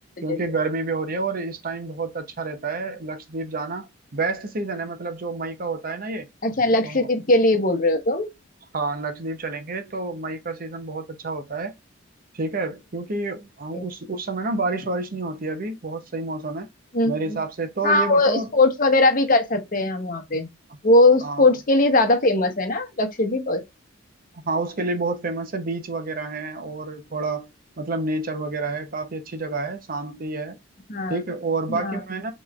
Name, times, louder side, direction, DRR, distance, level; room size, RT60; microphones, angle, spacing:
voice 1, 0.2-6.3 6.8-7.1 8.7-11.7 12.3-16.7 17.0-18.5 21.2-21.5 24.4-27.5 27.8-30.6 31.1-32.3, right 3 dB, 45° right, 0.8 m, -29 dB
voice 2, 6.4-8.3 13.7-13.8 16.9-17.4 17.8-20.5 20.8-23.6 30.9-31.2 31.7-32.0, left 2 dB, 45° left, 1.0 m, -20 dB
5.3 x 3.1 x 2.4 m
head